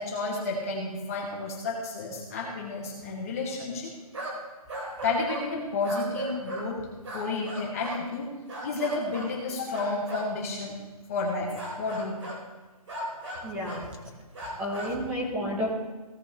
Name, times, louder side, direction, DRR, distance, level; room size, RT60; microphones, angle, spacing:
voice 1, 0.0-3.9 5.0-6.8 7.1-8.3 8.6-10.8 11.1-11.5 11.8-12.2 15.2-15.5, left 3 dB, 25° left, -2 dB, 1.9 m, -31 dB
sound 1, 4.1-4.4 4.7-5.5 5.8-6.7 7.0-8.1 8.5-9.4 9.7-10.3 11.5-12.4 12.9-13.9 14.3-14.9, right 1 dB, 50° right, 3.3 m, -37 dB
voice 2, 13.4-13.8 14.6-15.7, equal, 5° right, -4 dB, 0.9 m, -30 dB
17.0 x 7.8 x 3.1 m, 1.2 s
hypercardioid pair, 170°, 20 cm